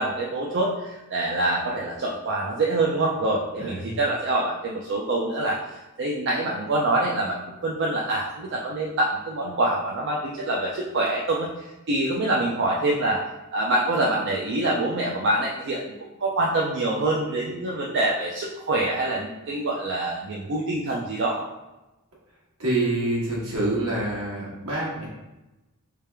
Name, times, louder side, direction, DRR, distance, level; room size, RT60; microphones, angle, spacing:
voice 1, 0.0-13.2 13.5-15.8 16.2-21.4, right 2 dB, 55° right, -3 dB, 0.5 m, -25 dB
voice 2, 3.6-4.0 22.6-25.1, right 2 dB, 75° right, -6 dB, 1.4 m, -26 dB
3.3 x 3.3 x 3.3 m, 1.0 s
head